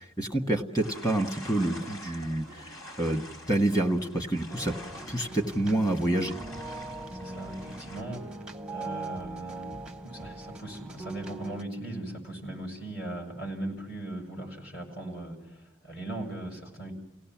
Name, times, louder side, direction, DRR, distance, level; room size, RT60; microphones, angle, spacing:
voice 1, 0.0-4.7 5.1-6.3, right 1 dB, 20° left, 5 dB, 1.8 m, -28 dB
sound 1, 0.8-8.0, equal, 85° left, 5.3 m, -46 dB
sound 2, 4.5-11.6, right 2 dB, 5° right, 0.7 m, -41 dB
voice 2, 7.1-8.2 8.7-16.9, right 1 dB, 50° left, 2 dB, 6.9 m, -39 dB
30.0 x 17.0 x 7.5 m, 1.0 s
head